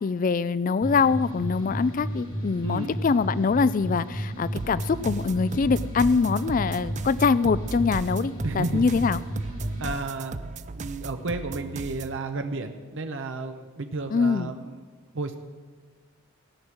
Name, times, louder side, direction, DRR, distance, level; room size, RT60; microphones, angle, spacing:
voice 1, 0.0-9.2 14.1-14.5, left 5 dB, 40° left, 17 dB, 0.3 m, -24 dB
sound 1, 0.8-9.9, right 1 dB, 85° left, 5.1 m, -33 dB
voice 2, 2.6-3.0 8.4-8.9 9.8-10.4 10.7-14.8 15.1-15.4, right 3 dB, 60° right, 6 dB, 0.8 m, -32 dB
sound 2, 4.5-12.2, right 3 dB, 35° right, 0.4 m, -37 dB
17.0 x 6.2 x 8.9 m, 1.5 s
head